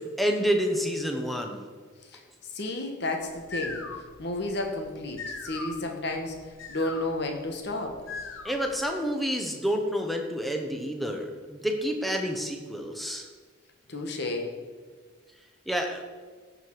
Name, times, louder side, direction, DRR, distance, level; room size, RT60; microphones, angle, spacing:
voice 1, 0.0-1.6 8.4-13.3 15.7-16.0, equal, ahead, 3 dB, 1.1 m, -29 dB
voice 2, 2.5-6.4 6.7-8.0 13.9-14.5, left 2 dB, 55° left, 3 dB, 1.4 m, -32 dB
sound 1, 3.2-8.8, left 3 dB, 80° left, 1.4 m, -41 dB
15.5 x 6.8 x 4.7 m, 1.5 s
head